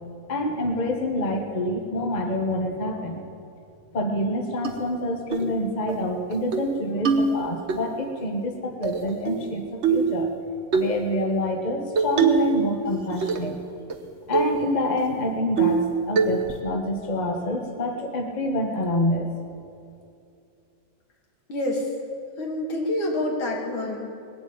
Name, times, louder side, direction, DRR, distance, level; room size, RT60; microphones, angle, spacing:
voice 1, 0.3-3.2 3.9-10.3 10.7-13.5 14.3-19.3, left 1 dB, 25° left, 2 dB, 1.2 m, -27 dB
sound 1, 4.6-4.7 5.3-5.5 5.9-6.0 6.3-6.7 7.0-7.8 8.8-9.5 9.8-10.1 10.7-10.9 12.0-12.5 12.9-13.5 13.9-14.0 14.3-14.6 15.0-15.1 15.6-15.9 16.2-16.6, right 5 dB, 45° right, 1.0 m, -23 dB
voice 2, 21.5-21.9 22.4-24.1, left 1 dB, 75° left, -1 dB, 3.2 m, -27 dB
20.5 x 7.7 x 8.7 m, 2.6 s
omnidirectional pair, 2.2 m